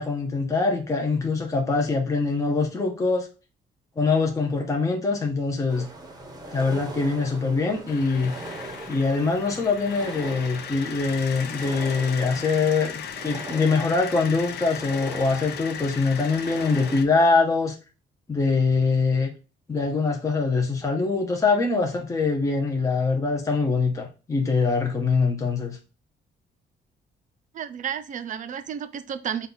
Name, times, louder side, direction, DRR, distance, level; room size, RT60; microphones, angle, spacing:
voice 1, 0.0-3.3 4.0-5.9 6.5-8.3 8.9-17.8 18.3-19.3 19.7-25.8, left 4 dB, 15° left, 0.6 m, -23 dB
sound 1, 5.7-17.0, right 2 dB, 20° right, 0.8 m, -41 dB
sound 2, 7.9-17.0, left 7 dB, 60° left, 0.5 m, -37 dB
voice 2, 27.5-29.5, right 8 dB, 40° right, 0.4 m, -32 dB
5.3 x 2.3 x 3.8 m
cardioid pair, 145°, 20 cm